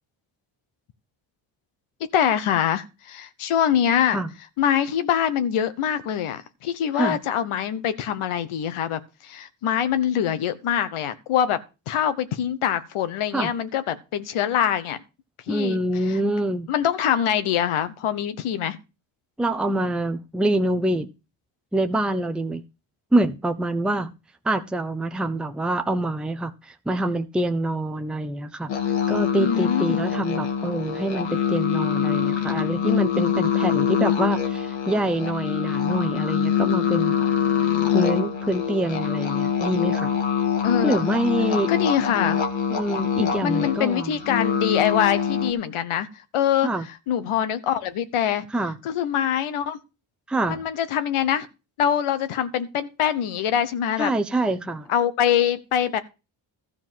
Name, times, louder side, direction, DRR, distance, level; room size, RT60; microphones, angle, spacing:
voice 1, 2.1-4.2 4.6-11.6 11.9-15.0 15.5-15.8 16.1-16.2 16.7-18.8 29.4-30.0 40.6-41.1 41.7-42.4 43.4-46.1 46.3-46.7 47.1-48.5 48.8-49.8 50.5-51.5 51.8-54.1 54.9-56.0, left 9 dB, 90° left, 1.0 m, -24 dB
voice 2, 15.5-16.7 19.4-21.1 21.7-22.6 23.1-24.1 24.4-28.7 29.1-37.3 37.9-40.2 40.8-41.7 42.7-44.1 46.6-46.8 48.5-48.8 50.3-50.7 54.0-54.9, right 1 dB, ahead, 0.7 m, -25 dB
sound 1, 28.7-45.5, left 8 dB, 65° left, 2.0 m, -24 dB
13.5 x 4.7 x 7.4 m
cardioid pair, 100°, 48 cm